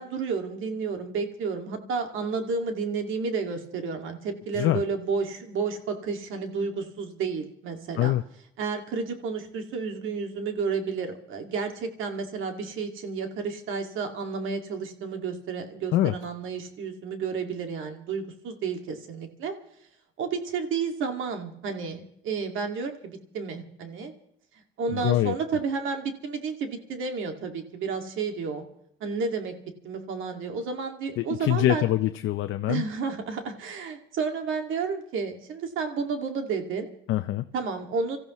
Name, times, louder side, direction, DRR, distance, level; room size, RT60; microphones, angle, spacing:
voice 1, 0.0-8.1 8.6-19.5 20.2-24.1 24.8-28.6 29.0-29.5 29.8-31.8 32.7-36.9 37.5-38.2, right 5 dB, 85° right, 5 dB, 2.2 m, -31 dB
voice 2, 24.9-25.3 31.2-32.8 37.1-37.5, left 14 dB, 80° left, 8 dB, 0.6 m, -24 dB
26.5 x 14.5 x 3.1 m, 0.71 s
cardioid pair, 90°, 20 cm